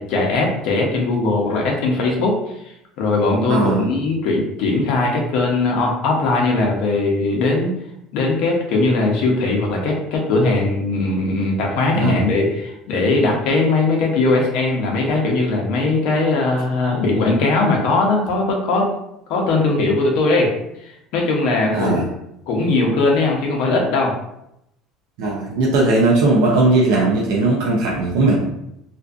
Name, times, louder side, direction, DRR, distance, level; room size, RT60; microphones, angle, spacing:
voice 1, 0.0-2.4 3.0-7.7 8.1-18.9 19.3-20.5 20.8-22.1 22.5-24.1, left 3 dB, 60° left, 0 dB, 0.7 m, -19 dB
voice 2, 3.5-3.9 12.0-12.3 21.7-22.0 25.2-28.4, right 2 dB, 80° right, -3 dB, 0.5 m, -18 dB
2.5 x 2.4 x 2.4 m, 0.80 s
cardioid pair, 170°, 0 cm